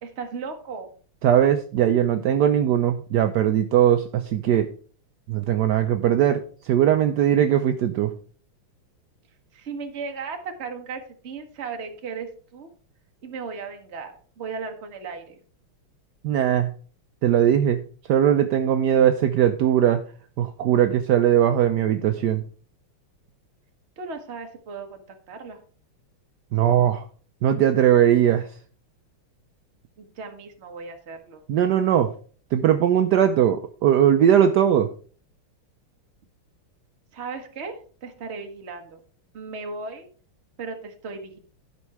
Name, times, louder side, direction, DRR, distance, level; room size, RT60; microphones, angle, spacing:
voice 1, 0.0-0.9 9.5-12.7 13.2-15.4 24.0-25.6 30.0-31.4 37.1-39.0 39.3-40.1 40.6-41.4, right 4 dB, 35° right, 4 dB, 1.3 m, -36 dB
voice 2, 1.2-4.7 5.3-8.1 16.2-16.7 17.2-17.8 18.1-20.0 20.4-22.4 26.5-27.0 27.4-28.5 31.5-32.1 32.5-34.9, right 10 dB, 75° right, 8 dB, 1.0 m, -20 dB
11.5 x 5.4 x 4.7 m, 0.42 s
omnidirectional pair, 2.4 m